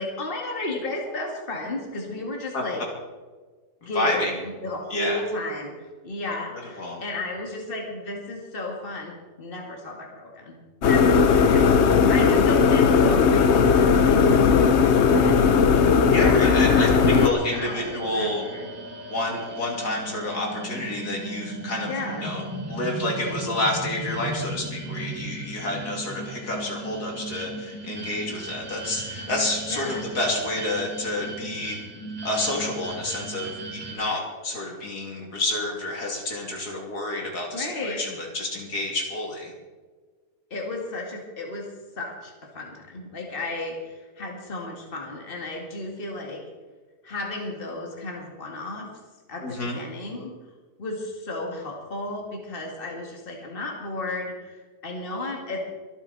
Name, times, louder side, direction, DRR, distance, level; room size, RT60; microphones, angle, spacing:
voice 1, 0.0-2.8 3.9-15.6 16.1-18.7 21.9-22.3 29.7-30.0 37.5-38.0 40.5-41.7 42.0-46.4 47.0-48.9 49.3-50.3 50.8-55.6, left 2 dB, 35° left, 0 dB, 2.4 m, -33 dB
voice 2, 3.8-4.3 4.9-5.2 6.8-7.0 16.1-18.4 19.1-22.4 22.7-31.8 32.2-39.5 49.4-49.8, left 2 dB, 70° left, 0 dB, 3.2 m, -29 dB
sound 1, 10.8-17.3, left 5 dB, 50° left, 0.9 m, -17 dB
sound 2, 17.0-33.9, right 2 dB, 15° right, 5.7 m, -36 dB
24.0 x 9.0 x 4.2 m, 1.4 s
omnidirectional pair, 1.7 m